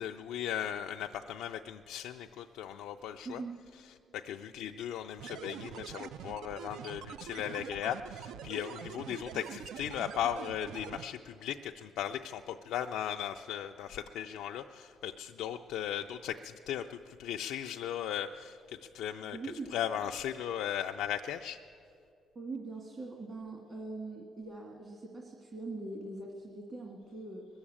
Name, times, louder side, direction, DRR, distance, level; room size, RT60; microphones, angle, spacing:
voice 1, 0.0-3.4 4.1-18.6 18.9-19.4 19.7-21.6, left 10 dB, 90° left, 3 dB, 0.4 m, -37 dB
sound 1, 5.2-11.1, right 9 dB, 85° right, 0.4 m, -45 dB
voice 2, 19.3-19.7 22.4-27.5, right 3 dB, 40° right, 1 dB, 1.7 m, -42 dB
21.5 x 7.2 x 8.6 m, 2.5 s
cardioid pair, 90°, 0 cm